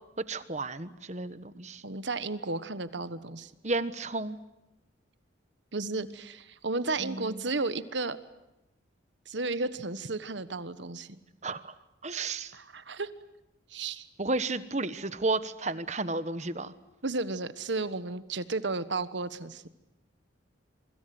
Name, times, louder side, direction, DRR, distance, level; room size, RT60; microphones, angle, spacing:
voice 1, 0.2-1.8 3.6-4.4 7.0-7.5 11.4-11.7 12.0-12.5 14.2-16.7, right 3 dB, 35° right, 13 dB, 1.2 m, -32 dB
voice 2, 1.8-3.5 5.7-8.2 9.3-11.2 12.5-13.1 13.7-14.1 17.0-19.7, right 3 dB, 70° right, 13 dB, 1.4 m, -33 dB
27.5 x 24.5 x 7.8 m, 0.92 s
head